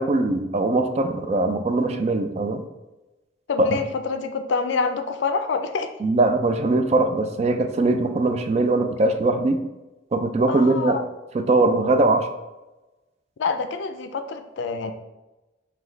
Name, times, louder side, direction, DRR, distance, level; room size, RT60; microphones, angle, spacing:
voice 1, 0.0-2.6 6.0-9.6 10.1-11.0 11.3-12.3, right 2 dB, 35° right, 7 dB, 0.3 m, -21 dB
voice 2, 3.5-5.9 10.5-11.0 13.4-14.9, left 4 dB, 70° left, 8 dB, 0.4 m, -26 dB
5.0 x 2.3 x 3.8 m, 1.0 s
head